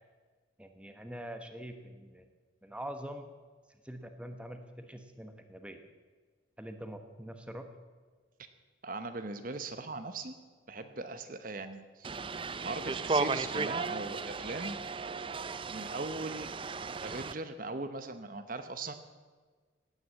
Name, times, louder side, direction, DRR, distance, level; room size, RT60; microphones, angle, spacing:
voice 1, 0.6-2.3 2.6-3.3 3.8-5.8 6.6-7.7, equal, 5° right, 6 dB, 1.2 m, -44 dB
voice 2, 8.8-10.4 10.7-12.2 12.6-14.8 15.7-16.5 17.0-18.9, right 3 dB, 45° right, 9 dB, 1.0 m, -39 dB
sound 1, 12.0-17.3, right 4 dB, 25° right, 0.5 m, -35 dB
17.0 x 9.6 x 8.2 m, 1.5 s
head